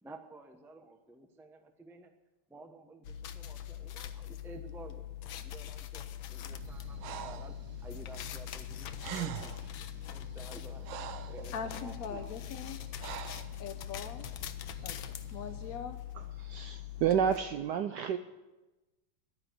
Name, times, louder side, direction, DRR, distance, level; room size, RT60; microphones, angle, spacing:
voice 1, 0.0-2.1 2.5-7.5 7.8-10.9 11.3-12.9, right 2 dB, 5° right, 6 dB, 0.4 m, -52 dB
sound 1, 3.0-17.4, left 12 dB, 85° left, 1.6 m, -42 dB
sound 2, 6.5-15.8, right 3 dB, 45° right, 1.5 m, -51 dB
Breathing, 7.0-7.5 8.7-8.8 9.0-9.7 10.4-11.4 13.0-13.5, right 11 dB, 90° right, 1.5 m, -41 dB
voice 2, 11.5-12.8 13.6-14.3 14.8-16.0, left 6 dB, 60° left, 7 dB, 1.0 m, -42 dB
voice 3, 16.1-18.2, right 8 dB, 70° right, 9 dB, 1.1 m, -30 dB
11.0 x 9.4 x 9.3 m, 1.1 s
omnidirectional pair, 2.1 m